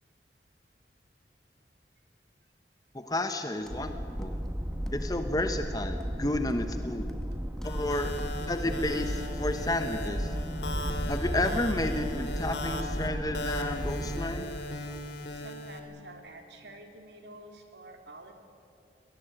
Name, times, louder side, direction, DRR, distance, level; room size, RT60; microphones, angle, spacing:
voice 1, 2.9-4.3 4.9-7.1 7.6-8.1 8.5-10.3 11.1-14.5, left 1 dB, 20° left, 7 dB, 1.0 m, -31 dB
Walk footsteps, 3.6-3.9 4.2-4.5 4.7-5.1 5.3-6.2 6.5-6.7 7.0-7.3 7.6-7.8 8.1-8.3 8.7-8.8, equal, 5° left, 1.5 m, -49 dB
sound 1, 3.7-14.6, equal, 15° right, 1.2 m, -34 dB
sound 2, 7.6-15.8, left 1 dB, 80° left, 2.6 m, -38 dB
voice 2, 15.3-18.3, right 2 dB, 80° right, 4 dB, 3.1 m, -49 dB
24.0 x 18.5 x 8.9 m, 2.8 s
head